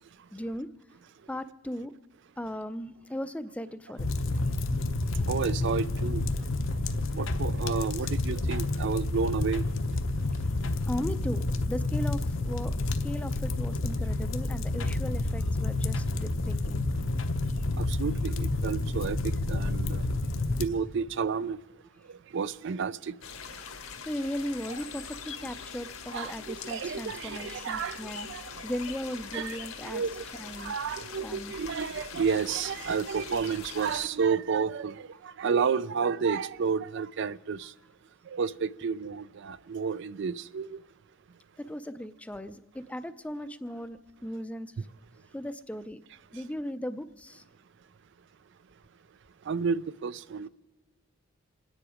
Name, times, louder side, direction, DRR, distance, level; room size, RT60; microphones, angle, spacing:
voice 1, 0.3-0.7 1.3-1.9 2.4-4.1 10.4-10.5 10.9-16.9 24.0-30.0 30.4-30.8 31.2-31.6 41.7-44.7 45.3-46.0 46.3-47.4, equal, 5° left, 0.5 m, -37 dB
sound 1, 4.0-20.7, left 2 dB, 65° left, 0.9 m, -29 dB
voice 2, 5.3-6.3 7.1-9.6 17.8-20.1 20.6-21.6 22.3-23.1 24.7-24.8 26.1-28.4 29.3-30.3 30.6-37.7 38.3-40.8 49.5-50.5, right 6 dB, 60° right, 0.4 m, -31 dB
sound 2, 23.2-34.1, left 6 dB, 85° left, 1.6 m, -43 dB
27.5 x 9.9 x 5.0 m
head